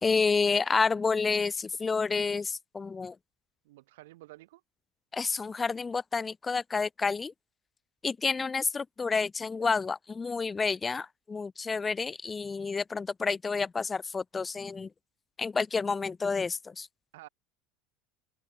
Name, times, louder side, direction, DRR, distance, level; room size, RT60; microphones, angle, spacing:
voice 1, 0.0-3.2 5.1-7.3 8.0-14.9 15.4-16.9, left 4 dB, 20° left, 0.5 m, -29 dB
voice 2, 3.6-4.6 17.1-17.3, right 18 dB, 65° right, 2.1 m, -50 dB
figure-of-eight pair, 70°, 0 cm